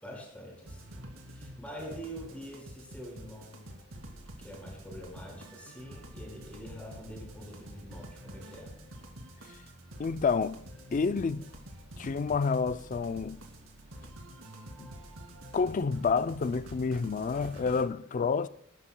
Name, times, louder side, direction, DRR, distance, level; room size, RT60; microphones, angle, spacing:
voice 1, 0.0-0.9 1.2-3.6 4.4-8.8, equal, 5° left, 5.1 m, -45 dB
sound 1, 0.7-17.8, right 1 dB, 75° right, 2.4 m, -47 dB
voice 2, 10.0-10.6 10.9-11.5 12.0-13.4 14.8-14.9 15.5-18.5, left 5 dB, 40° left, 0.4 m, -29 dB
25.5 x 11.0 x 2.2 m
head